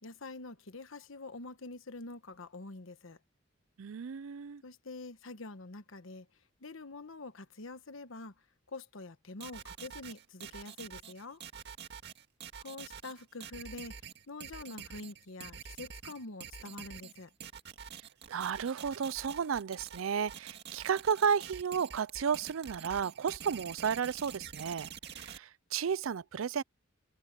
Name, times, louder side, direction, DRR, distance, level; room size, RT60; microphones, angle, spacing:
voice 1, 0.0-3.2 4.6-6.3 6.6-8.3 8.7-11.4 12.6-14.0 14.3-17.3, left 3 dB, 80° left, 1.3 m, -46 dB
voice 2, 3.8-4.6 18.3-26.6, right 7 dB, 90° right, 0.5 m, -33 dB
sound 1, 9.4-25.4, right 7 dB, 60° right, 1.9 m, -47 dB
head